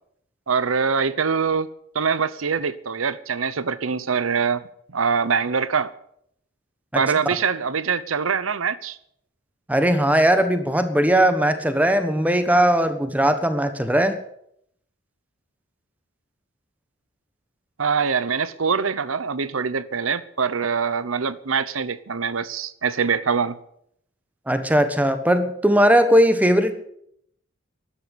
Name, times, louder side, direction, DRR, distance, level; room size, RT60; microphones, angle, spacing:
voice 1, 0.5-1.7 1.9-4.6 4.9-5.9 6.9-9.0 17.8-23.6, right 5 dB, 90° right, 0.8 m, -23 dB
voice 2, 9.7-14.2 24.5-26.8, right 1 dB, 10° right, 1.3 m, -19 dB
13.0 x 11.0 x 8.5 m
head